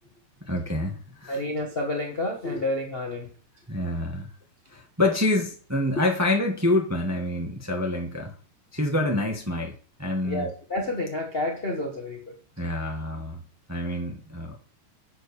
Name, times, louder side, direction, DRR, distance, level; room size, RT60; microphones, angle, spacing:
voice 1, 0.4-1.4 3.7-4.3 4.7-8.3 8.7-10.5 12.6-13.4 13.7-14.5, left 1 dB, 15° right, 1 dB, 0.6 m, -27 dB
voice 2, 1.3-3.3 10.2-12.4, left 1 dB, 75° left, 1 dB, 0.5 m, -29 dB
7.8 x 4.8 x 7.0 m, 0.41 s
omnidirectional pair, 3.3 m